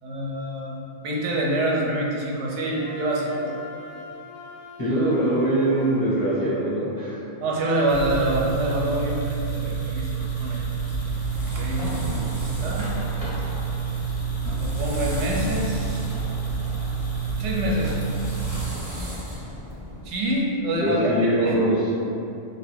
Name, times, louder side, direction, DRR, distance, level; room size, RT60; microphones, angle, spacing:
voice 1, 0.0-3.5 7.4-10.7 11.5-12.9 13.3-13.4 14.6-16.0 17.3-18.0 20.0-21.6, right 1 dB, 90° right, -2 dB, 0.9 m, -26 dB
Wind instrument woodwind instrument, 2.7-6.4, left 5 dB, 90° left, 0.9 m, -41 dB
voice 2, 4.8-7.2 20.8-21.8, right 1 dB, 20° left, -12 dB, 0.8 m, -22 dB
sound 1, 7.9-18.6, right 5 dB, 45° left, 0.4 m, -29 dB
sound 2, 10.1-20.4, equal, 20° right, 0.6 m, -35 dB
2.5 x 2.5 x 3.3 m, 2.7 s
omnidirectional pair, 1.2 m